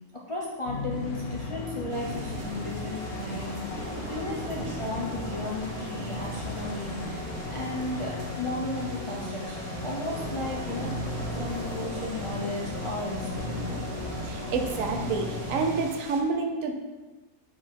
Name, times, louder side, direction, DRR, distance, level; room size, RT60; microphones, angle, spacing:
voice 1, 0.3-3.6 4.1-10.9 11.4-13.6, left 2 dB, 40° left, -4 dB, 0.4 m, -35 dB
sound 1, 0.7-15.8, left 2 dB, 70° left, 1.3 m, -35 dB
sound 2, 1.9-16.2, right 3 dB, 85° right, 1.4 m, -42 dB
voice 2, 14.2-16.8, right 4 dB, 65° right, 4 dB, 1.0 m, -28 dB
5.1 x 4.2 x 4.5 m, 1.2 s
omnidirectional pair, 1.6 m